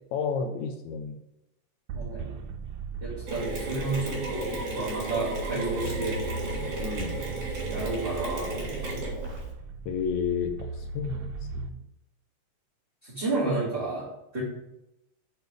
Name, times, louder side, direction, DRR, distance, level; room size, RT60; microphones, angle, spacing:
voice 1, 0.1-1.2 5.8-6.0 6.8-7.2 9.9-11.8, left 6 dB, 80° left, 6 dB, 1.8 m, -31 dB
voice 2, 1.9-2.4 3.0-6.2 7.7-9.0 13.0-14.4, right 3 dB, 20° right, -10 dB, 2.0 m, -31 dB
sound 1, 1.9-11.7, right 4 dB, 90° right, 2.1 m, -38 dB
Mechanisms, 3.3-9.5, right 1 dB, 70° right, 3.4 m, -34 dB
7.0 x 4.2 x 5.0 m, 0.86 s
omnidirectional pair, 3.4 m